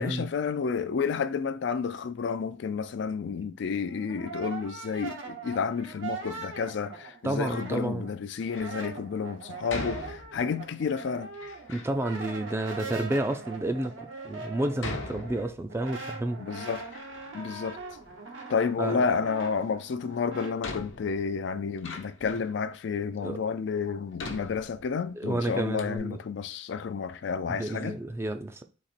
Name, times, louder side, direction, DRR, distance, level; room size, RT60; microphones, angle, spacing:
voice 1, 0.0-11.3 16.4-16.8 17.3-17.8 18.5-28.0, left 5 dB, 65° left, 0.4 m, -31 dB
Brass instrument, 3.7-8.1 8.4-20.6, right 4 dB, 75° right, 1.1 m, -41 dB
voice 2, 7.2-8.1 11.7-16.4 18.8-19.2 23.2-23.4 25.2-26.2 27.5-28.6, right 1 dB, 15° right, 0.4 m, -31 dB
Door, 8.3-8.8 9.7-10.7 11.3-12.0 12.7-12.8 13.5-13.6 14.8-15.9 16.3-17.4 17.6-18.5 19.8-19.9 20.6-22.6 23.2-23.3 24.2-25.2 25.5-25.6 25.8-26.0, left 3 dB, 85° left, 0.9 m, -41 dB
4.1 x 2.9 x 4.2 m
head